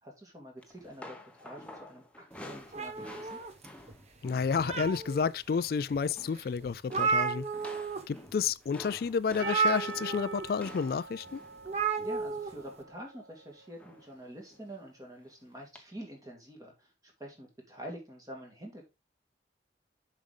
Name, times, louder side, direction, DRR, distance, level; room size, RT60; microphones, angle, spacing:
voice 1, 0.0-3.4 12.0-18.9, right 1 dB, 20° right, 2.3 m, -47 dB
sound 1, 0.6-5.2 5.4-5.7 6.0-6.5 6.9-12.9 13.8-14.2 14.5-14.7 15.7-15.8, left 1 dB, 5° left, 0.9 m, -50 dB
sound 2, 2.7-3.9 4.4-5.3 5.9-6.0 6.4-6.5 6.6-8.0 8.3-8.5 9.4-10.4 11.6-12.5, right 4 dB, 40° right, 0.8 m, -32 dB
voice 2, 4.2-7.5 8.1-11.4, left 6 dB, 55° left, 0.3 m, -30 dB
Percussion, 9.4-13.7, right 5 dB, 90° right, 0.6 m, -44 dB
7.2 x 5.1 x 3.7 m
head